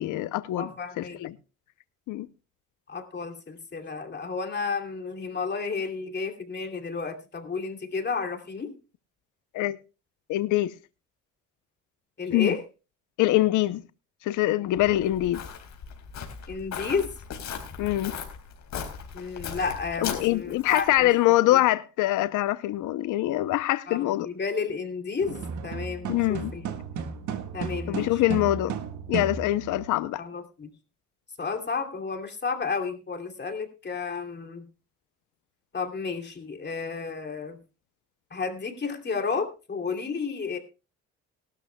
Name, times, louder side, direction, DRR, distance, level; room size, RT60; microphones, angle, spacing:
voice 1, 0.0-0.7 1.0-1.4 2.1-2.3 9.5-9.8 10.3-10.7 12.3-12.6 13.2-13.8 14.2-15.4 17.8-18.1 20.0-24.3 26.1-26.5 27.9-28.7 29.1-30.2, left 16 dB, 90° left, 0.7 m, -24 dB
voice 2, 0.6-1.2 2.9-8.7 12.2-12.6 16.5-17.1 19.1-21.1 21.5-21.6 23.9-26.7 27.5-28.2 30.2-30.7 31.4-34.7 35.7-37.6 38.3-40.6, left 5 dB, 35° left, 2.7 m, -32 dB
Walk footsteps, 14.8-21.0, left 7 dB, 70° left, 4.0 m, -38 dB
sound 1, 25.2-29.9, right 6 dB, 75° right, 1.7 m, -34 dB
20.5 x 12.5 x 2.2 m
cardioid pair, 90°, 30 cm